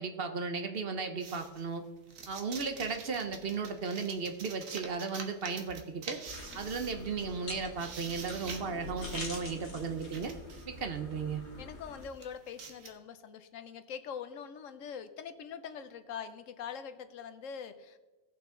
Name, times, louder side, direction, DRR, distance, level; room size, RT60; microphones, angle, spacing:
voice 1, 0.0-1.8 2.3-6.2 6.5-10.3 10.7-11.4, right 5 dB, 55° right, 7 dB, 0.9 m, -35 dB
sound 1, 1.2-10.8 11.4-11.6 11.9-12.9, right 5 dB, 85° right, 1.5 m, -47 dB
sound 2, 6.3-12.1, left 3 dB, 60° left, 1.9 m, -45 dB
voice 2, 11.6-18.0, left 7 dB, 80° left, 11 dB, 1.1 m, -43 dB
17.0 x 5.7 x 3.7 m, 1.2 s
omnidirectional pair, 1.3 m